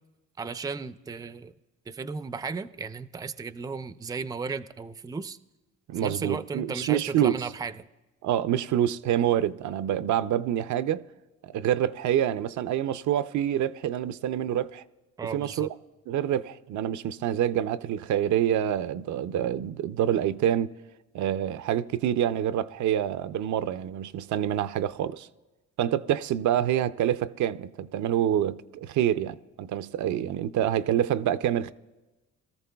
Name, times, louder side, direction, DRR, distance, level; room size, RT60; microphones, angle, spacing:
voice 1, 0.4-1.5 1.9-5.4 6.0-7.8 15.2-15.7, right 4 dB, 15° right, 0.4 m, -35 dB
voice 2, 5.9-7.4 8.2-11.0 11.4-14.8 15.3-15.7 16.1-20.7 21.1-25.3 25.8-31.7, right 10 dB, 70° right, 0.5 m, -27 dB
22.0 x 13.5 x 2.3 m
cardioid pair, 90°, 30 cm